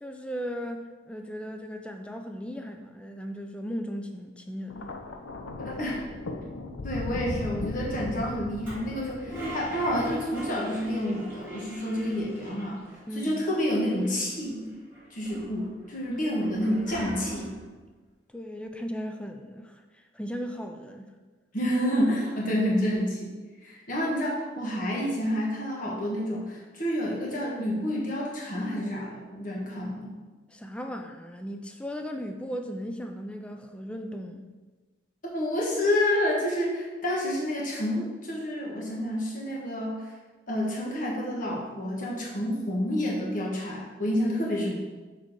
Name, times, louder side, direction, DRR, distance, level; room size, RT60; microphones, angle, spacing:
voice 1, 0.0-5.0 13.1-13.4 18.3-21.1 30.5-34.5, equal, 5° left, 5 dB, 0.3 m, -37 dB
Thunder, 4.7-11.1 12.0-12.3, left 2 dB, 80° left, 0.6 m, -38 dB
voice 2, 5.6-6.0 6.8-12.8 13.1-14.7 15.1-17.5 21.5-23.3 23.6-30.1 35.3-40.1 40.5-44.8, equal, 40° left, -3 dB, 1.3 m, -29 dB
Toilet flush, 8.6-13.0 13.3-13.4 13.6-14.4 14.9-17.7, right 1 dB, 10° right, 2.1 m, -40 dB
6.6 x 4.1 x 4.6 m, 1.3 s
head